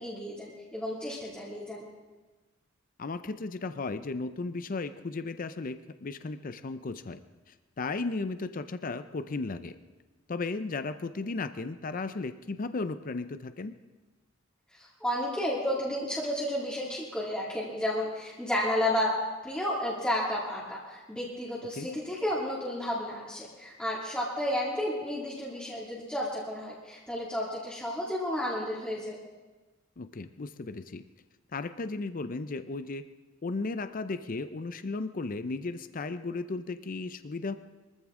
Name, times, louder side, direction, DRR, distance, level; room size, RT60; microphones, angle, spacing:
voice 1, 0.0-1.8 14.7-19.1 19.4-29.1, left 1 dB, 5° left, -6 dB, 2.4 m, -32 dB
voice 2, 3.0-7.2 7.5-9.8 10.3-13.7 21.8-21.9 30.0-31.0 31.5-33.0 33.4-37.5, left 3 dB, 45° left, 12 dB, 0.5 m, -35 dB
23.0 x 14.5 x 3.7 m, 1.2 s
head